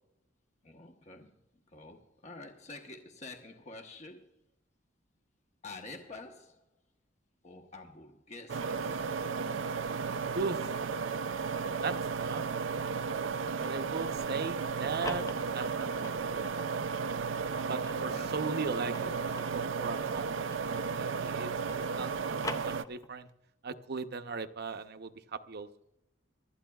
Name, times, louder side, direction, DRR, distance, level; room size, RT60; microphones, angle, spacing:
voice 1, 0.6-1.3 1.7-4.3 5.6-6.6 7.4-9.1 17.8-18.3, left 3 dB, 40° left, 3 dB, 1.0 m, -48 dB
sound 1, 8.5-22.8, right 5 dB, 85° right, 0.5 m, -34 dB
voice 2, 10.3-10.7 11.8-12.4 13.6-15.2 15.5-16.6 17.7-19.1 19.5-23.3 23.6-25.7, right 4 dB, 60° right, 9 dB, 0.8 m, -38 dB
Newspaper Flipping, 14.7-16.7 17.3-21.0 21.3-23.3, left 2 dB, 20° left, 0.5 m, -45 dB
24.0 x 12.5 x 2.3 m, 0.88 s
head